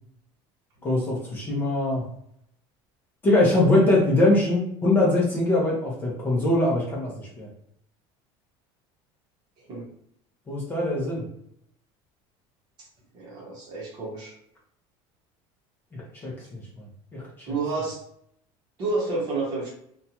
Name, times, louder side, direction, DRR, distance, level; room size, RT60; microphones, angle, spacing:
voice 1, 0.8-2.1 3.2-7.5 10.5-11.3 15.9-16.8 17.1-17.2, left 2 dB, 15° left, -4 dB, 0.6 m, -22 dB
voice 2, 13.1-14.3 17.5-18.0 18.8-19.7, right 3 dB, 35° right, -2 dB, 0.8 m, -29 dB
2.5 x 2.2 x 2.8 m, 0.70 s
cardioid pair, 175°, 12 cm